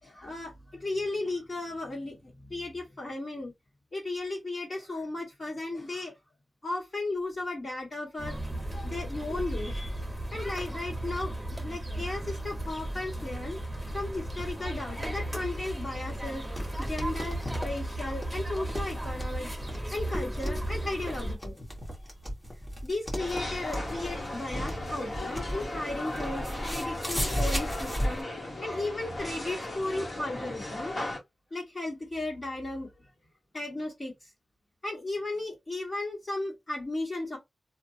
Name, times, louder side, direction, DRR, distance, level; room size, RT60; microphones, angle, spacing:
voice 1, 0.0-3.5 3.9-6.1 6.6-8.4 8.8-10.0 10.3-13.6 13.9-19.5 19.9-21.5 22.8-28.3 28.6-31.0 31.5-32.9 33.5-34.3 34.8-37.4, left 2 dB, 45° left, 1.8 m, -35 dB
sound 1, 8.2-21.4, right 1 dB, ahead, 1.3 m, -35 dB
sound 2, 16.0-28.2, equal, 15° left, 1.4 m, -36 dB
sound 3, 23.2-31.2, left 1 dB, 60° left, 1.5 m, -36 dB
2.8 x 2.5 x 2.7 m
wide cardioid pair, 120°, 0 cm